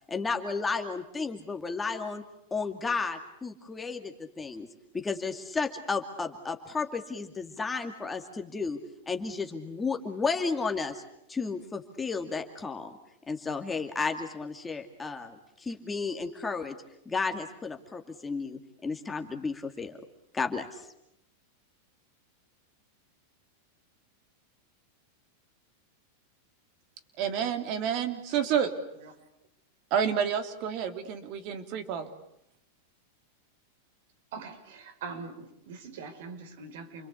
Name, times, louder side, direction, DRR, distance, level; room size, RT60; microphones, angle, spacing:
voice 1, 0.1-2.2 2.5-4.7 4.9-8.8 9.1-11.0 11.3-13.0 13.3-16.8 17.1-20.0 20.3-20.9, left 4 dB, 10° left, 5 dB, 2.4 m, -33 dB
voice 2, 27.2-28.7 29.9-32.1, right 8 dB, 45° right, 7 dB, 3.3 m, -29 dB
voice 3, 34.3-37.1, right 4 dB, 70° right, 6 dB, 5.0 m, -42 dB
29.0 x 22.0 x 8.4 m, 0.79 s
supercardioid pair, 135°, 0 cm